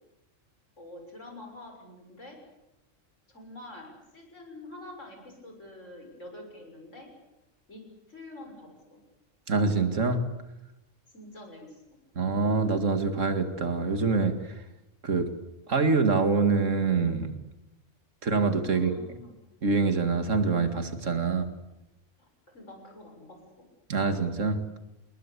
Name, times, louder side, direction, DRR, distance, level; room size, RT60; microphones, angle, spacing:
voice 1, 0.8-2.4 3.3-7.1 7.7-7.8 8.1-9.0 11.1-11.8 18.7-19.3 22.2-22.3 22.5-23.6, left 1 dB, 70° left, 3 dB, 7.1 m, -46 dB
voice 2, 9.5-10.2 12.2-14.4 15.0-15.3 15.7-17.3 18.2-19.0 19.6-21.5 23.9-24.6, right 4 dB, 75° right, 8 dB, 2.5 m, -25 dB
28.5 x 21.0 x 8.3 m, 0.95 s
omnidirectional pair, 1.3 m